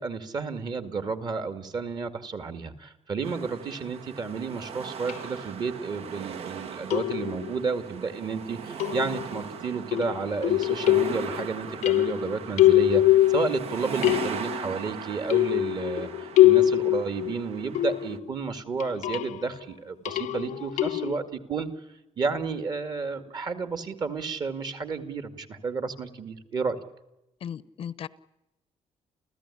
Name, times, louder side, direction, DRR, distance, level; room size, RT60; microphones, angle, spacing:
voice 1, 0.0-21.7 22.2-26.8, right 4 dB, 35° right, 2.2 m, -31 dB
sound 1, 3.2-18.2, right 7 dB, 55° right, 1.4 m, -39 dB
sound 2, 5.1-5.2 6.9-7.5 8.8-9.4 9.9-11.4 11.8-13.7 14.0-14.6 15.3-18.3 18.8-19.4 20.0-21.2, left 14 dB, 85° left, 0.9 m, -23 dB
voice 2, 27.4-28.1, left 8 dB, 50° left, 0.8 m, -36 dB
30.0 x 15.0 x 10.0 m
cardioid pair, 175°, 12 cm